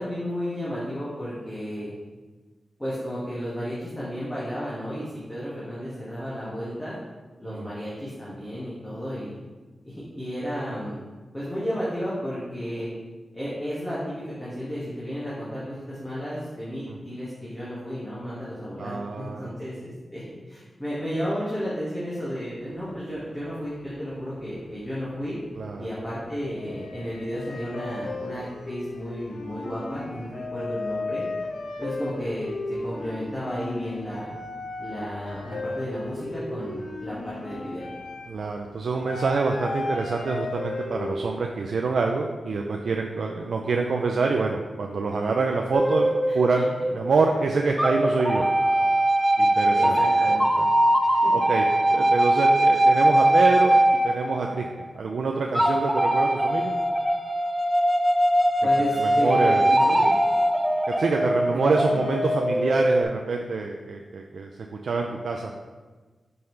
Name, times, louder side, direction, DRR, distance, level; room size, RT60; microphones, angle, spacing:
voice 1, 0.0-1.9 2.8-7.0 7.4-9.3 9.8-11.0 11.3-12.9 13.3-25.4 25.8-31.2 31.8-32.5 32.8-34.3 34.8-37.9 46.3-46.6 49.7-50.4 51.0-51.3 58.6-60.1 61.5-62.0, equal, 15° left, -10 dB, 1.9 m, -33 dB
voice 2, 18.8-19.5 25.6-25.9 38.3-48.4 49.4-49.9 50.3-50.7 51.3-51.6 51.9-53.8 54.0-54.7 54.9-56.7 59.0-60.0 61.0-64.5 64.8-65.5, right 4 dB, 80° right, 1 dB, 0.4 m, -26 dB
sound 1, 22.8-24.1 24.4-25.1 25.5-41.4, left 2 dB, 75° left, 0.6 m, -35 dB
sound 2, 45.7-47.3 47.8-54.9 55.5-63.0, right 1 dB, 5° right, 0.5 m, -21 dB
5.7 x 5.4 x 3.3 m, 1.3 s
cardioid pair, 75°, 0 cm